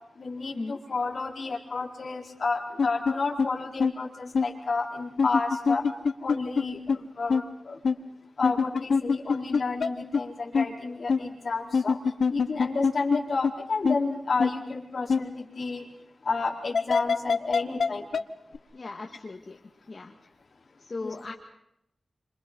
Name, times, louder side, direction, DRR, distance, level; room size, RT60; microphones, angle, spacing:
voice 1, 0.2-5.9 6.2-7.8 8.4-12.0 12.3-15.8 16.2-18.1 21.0-21.2, left 4 dB, 55° left, 0 dB, 4.7 m, -31 dB
sound 1, 2.8-3.1 3.4-3.5 3.8-3.9 4.3-4.4 5.2-6.6 6.9-7.0 7.3-7.4 7.8-8.0 8.4-9.9 10.1-10.2 10.5-10.7 11.1-11.2 11.7-13.2 13.4-13.5 13.8-14.0 14.4-14.5 15.1-15.2 16.7-17.9 18.1-18.2 18.5-18.6, left 5 dB, 80° left, 1.1 m, -23 dB
voice 2, 18.7-19.6 19.9-20.1 20.9-21.3, left 3 dB, 40° left, 1 dB, 2.1 m, -37 dB
29.0 x 26.5 x 5.5 m, 0.81 s
wide cardioid pair, 135°, 0 cm